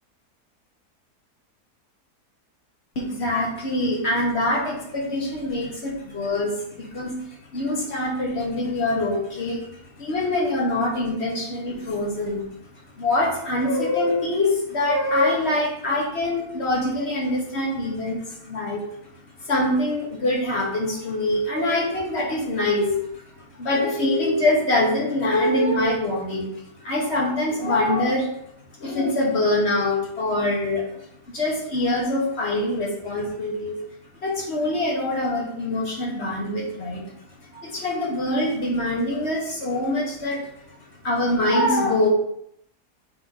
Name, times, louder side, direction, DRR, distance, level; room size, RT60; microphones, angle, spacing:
voice 1, 2.9-12.5 13.0-18.8 19.4-23.1 23.6-26.5 26.8-28.3 28.8-33.8 34.2-37.1 37.5-40.5 41.0-42.1, left 1 dB, 45° left, -1 dB, 1.4 m, -24 dB
6.9 x 2.9 x 4.9 m, 0.74 s
omnidirectional pair, 1.7 m